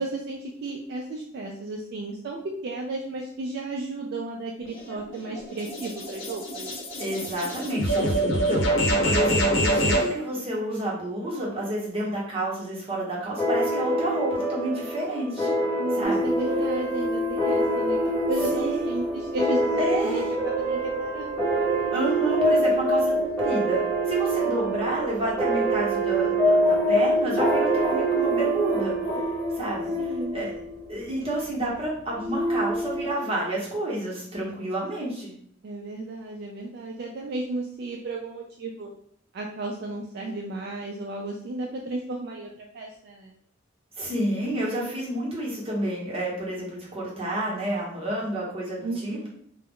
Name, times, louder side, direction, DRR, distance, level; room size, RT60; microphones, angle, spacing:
voice 1, 0.0-6.7 15.8-21.6 30.0-30.4 35.6-38.9 39.3-43.4 48.8-49.3, right 2 dB, 55° right, 0 dB, 0.3 m, -34 dB
sound 1, 4.7-10.1, right 1 dB, 70° left, 0.7 m, -25 dB
voice 2, 7.0-15.5 16.0-16.3 18.5-18.8 19.8-20.3 21.9-28.9 29.6-29.9 30.3-30.5 30.9-35.3 44.0-49.2, right 1 dB, 30° right, -5 dB, 0.9 m, -30 dB
sound 2, 13.4-30.5, right 1 dB, ahead, 0.9 m, -25 dB
sound 3, 16.0-31.1 31.8-33.1, left 1 dB, 20° left, 0.4 m, -32 dB
2.3 x 2.0 x 3.6 m, 0.63 s
head